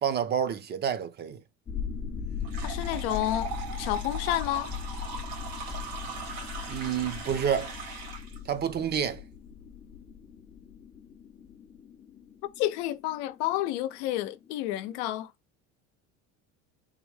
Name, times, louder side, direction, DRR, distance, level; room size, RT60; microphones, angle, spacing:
voice 1, 0.0-1.4 6.7-7.7 8.5-9.2, right 8 dB, 35° right, 0.5 m, -29 dB
sound 1, 1.7-15.0, left 6 dB, 20° left, 0.6 m, -39 dB
sound 2, 2.4-8.4, right 4 dB, 80° right, 1.8 m, -40 dB
voice 2, 2.6-4.7 12.4-15.3, left 14 dB, 85° left, 0.6 m, -30 dB
3.6 x 2.2 x 3.1 m
cardioid pair, 120°, 32 cm